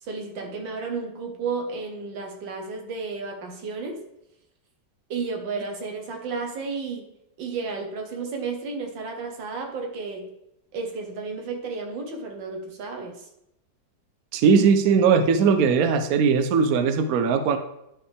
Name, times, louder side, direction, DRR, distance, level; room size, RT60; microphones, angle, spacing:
voice 1, 0.0-4.0 5.1-7.1 7.4-10.3 10.7-13.3, right 4 dB, 85° right, 3 dB, 1.9 m, -32 dB
voice 2, 14.3-17.6, right 6 dB, 65° right, 8 dB, 1.0 m, -19 dB
10.5 x 4.6 x 3.4 m, 0.84 s
omnidirectional pair, 2.0 m